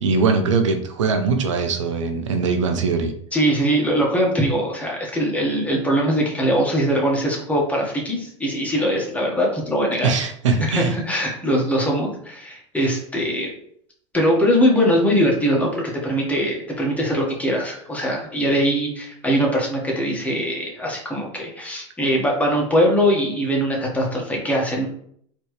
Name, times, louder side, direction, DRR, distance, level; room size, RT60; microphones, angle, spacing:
voice 1, 0.0-3.1 10.0-10.9, right 4 dB, 90° right, 6 dB, 0.7 m, -21 dB
voice 2, 3.3-10.1 10.6-13.5 14.1-24.9, equal, 10° left, -2 dB, 1.5 m, -21 dB
4.3 x 3.1 x 3.2 m, 0.65 s
hypercardioid pair, 100°, 15 cm